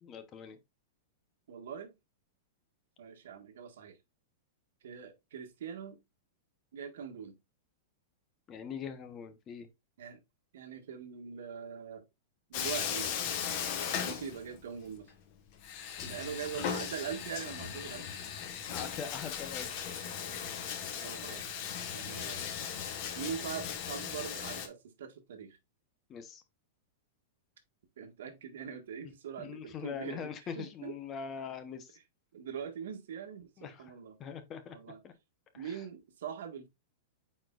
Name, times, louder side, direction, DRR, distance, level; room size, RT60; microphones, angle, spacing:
voice 1, 0.0-0.6 8.5-9.7 16.0-16.3 18.7-20.0 26.1-26.4 29.4-32.0 33.6-33.8 34.2-34.8 35.0-35.1 35.5-35.8, left 7 dB, 20° left, 0.8 m, -42 dB
voice 2, 1.5-1.9 3.0-4.0 4.8-6.0 6.7-7.4 10.0-10.2 10.5-12.0 12.5-13.1 14.0-15.1 16.0-18.1 20.9-22.5 22.7-25.6 28.0-30.9 32.3-34.2 34.7-35.0 35.5-36.7, right 7 dB, 75° right, 1.6 m, -42 dB
Bathtub (filling or washing), 12.5-14.8 15.1-15.2 15.6-24.7, left 8 dB, 40° left, 1.3 m, -37 dB
8.9 x 4.3 x 2.4 m
supercardioid pair, 165°, 0 cm